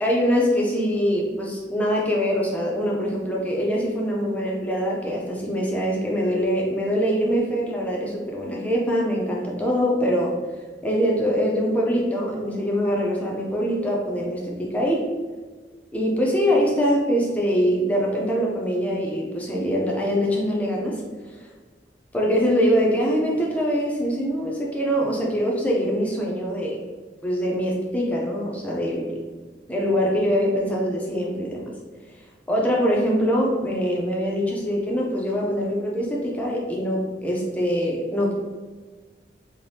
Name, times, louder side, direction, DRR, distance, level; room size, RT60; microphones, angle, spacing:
voice 1, 0.0-10.3 10.8-15.0 15.9-21.0 22.1-26.8 27.2-29.2 29.7-31.7 32.5-38.3, equal, 10° left, -3 dB, 0.4 m, -23 dB
2.7 x 2.1 x 3.2 m, 1.4 s
head